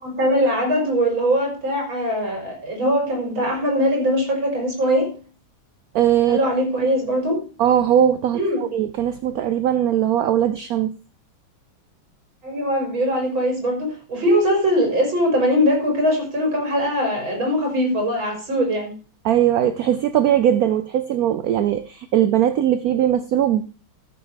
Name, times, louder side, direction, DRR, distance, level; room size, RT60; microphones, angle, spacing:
voice 1, 0.0-5.2 6.3-7.4 8.3-8.7 12.4-18.9, equal, 85° right, 5.5 m, -21 dB
voice 2, 5.9-6.4 7.6-10.9 19.2-23.6, right 10 dB, 65° right, 0.9 m, -19 dB
13.5 x 7.0 x 4.6 m
omnidirectional pair, 2.1 m